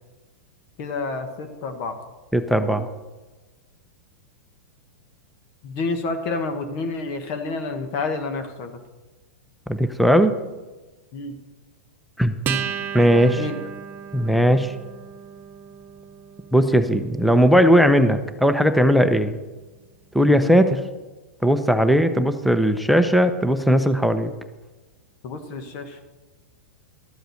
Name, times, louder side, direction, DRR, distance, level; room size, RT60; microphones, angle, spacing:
voice 1, 0.8-2.0 2.6-2.7 5.6-8.8 11.1-11.4 13.1-13.6 25.2-26.0, left 3 dB, 50° left, 6 dB, 1.4 m, -29 dB
voice 2, 2.3-2.9 9.7-10.3 12.2-12.3 12.9-13.4 14.1-14.7 16.5-19.4 20.1-20.8 21.4-24.3, equal, ahead, 10 dB, 0.8 m, -18 dB
Acoustic guitar, 12.4-19.3, right 6 dB, 30° right, 1.2 m, -34 dB
13.0 x 7.8 x 6.5 m, 1.2 s
hypercardioid pair, 110°, 7 cm